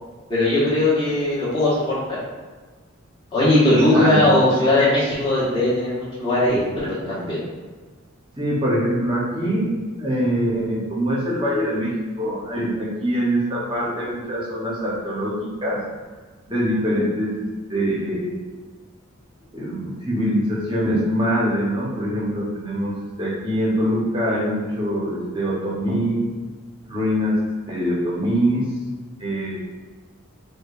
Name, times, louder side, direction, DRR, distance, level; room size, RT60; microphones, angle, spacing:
voice 1, 0.3-2.0 3.3-7.4, left 1 dB, 20° left, -9 dB, 1.1 m, -19 dB
voice 2, 3.9-4.3 8.4-9.7 10.0-15.8 16.5-18.4 19.5-26.2 26.8-27.3 27.7-28.6 29.2-29.6, equal, 20° right, -5 dB, 0.8 m, -23 dB
4.8 x 2.3 x 2.4 m, 1.4 s
head